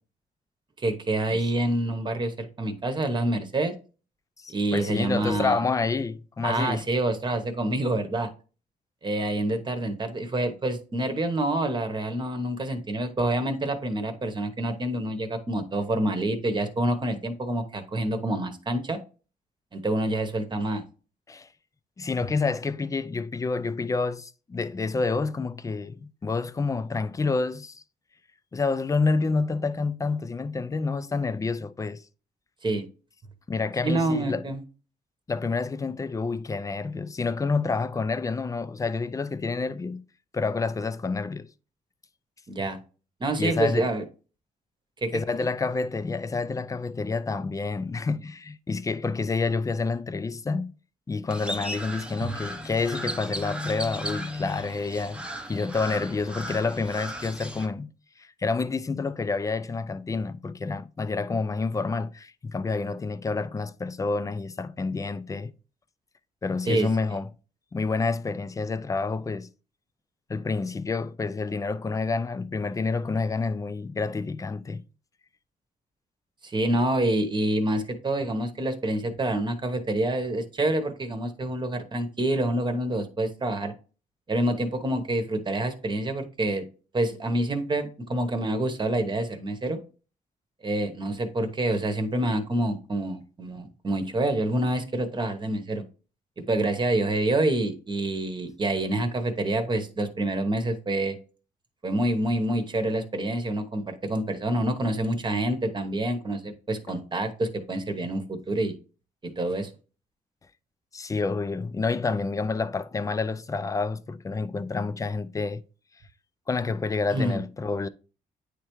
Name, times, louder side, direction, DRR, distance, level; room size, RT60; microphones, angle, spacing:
voice 1, 0.8-3.7 4.5-5.6 6.4-8.3 9.0-19.0 19.7-20.8 32.6-32.8 33.8-34.6 42.5-42.8 43.2-44.0 45.0-45.2 52.2-52.3 66.7-66.9 76.4-83.7 84.3-86.6 86.9-89.8 90.6-95.8 96.5-101.2 101.8-108.7 109.4-109.7 117.1-117.4, right 1 dB, 30° right, 1.0 m, -27 dB
voice 2, 4.4-6.8 21.3-21.5 22.0-27.8 28.5-32.0 33.5-34.4 35.3-40.0 40.3-41.5 43.4-43.9 45.1-50.7 51.1-57.9 58.2-65.5 66.4-67.3 67.7-69.5 70.3-74.8 110.9-115.6 116.5-117.9, left 4 dB, 20° left, 0.4 m, -28 dB
Crow, 51.3-57.7, equal, 5° right, 0.8 m, -36 dB
9.5 x 3.4 x 3.0 m
cardioid pair, 100°, 16 cm